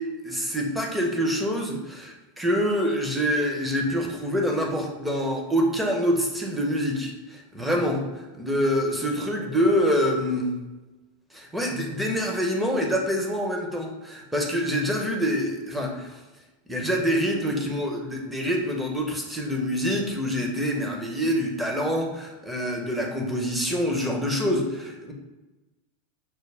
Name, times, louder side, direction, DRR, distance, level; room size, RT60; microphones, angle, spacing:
voice 1, 0.0-10.5 11.3-16.1 16.7-25.1, equal, 5° right, 1 dB, 0.9 m, -26 dB
6.0 x 2.1 x 3.4 m, 1.1 s
hypercardioid pair, 110°, 0 cm